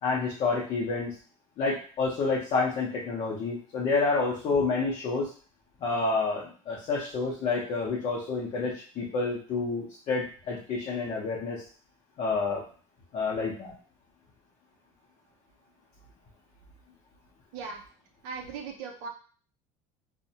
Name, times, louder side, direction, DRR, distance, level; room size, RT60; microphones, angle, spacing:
voice 1, 0.0-1.1 1.6-5.3 5.8-11.6 12.2-12.6 13.1-13.7, left 4 dB, 40° left, -4 dB, 0.6 m, -29 dB
voice 2, 18.2-19.1, right 5 dB, 75° right, 2 dB, 0.5 m, -38 dB
2.5 x 2.1 x 2.7 m, 0.41 s
cardioid pair, 160°, 15 cm